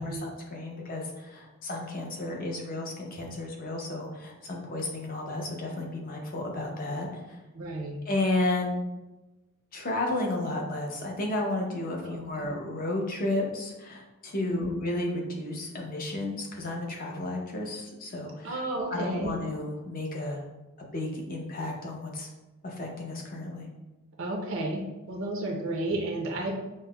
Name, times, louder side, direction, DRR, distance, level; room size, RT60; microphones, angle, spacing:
voice 1, 0.0-7.4 8.0-8.8 9.7-18.6 18.9-20.4 20.8-22.3 22.6-23.7, left 2 dB, 40° left, 0 dB, 0.6 m, -32 dB
voice 2, 7.5-8.0 12.0-12.5 14.4-14.8 18.4-19.3 24.2-26.5, right 1 dB, 60° right, 0 dB, 0.5 m, -32 dB
5.3 x 2.0 x 2.2 m, 1.1 s
head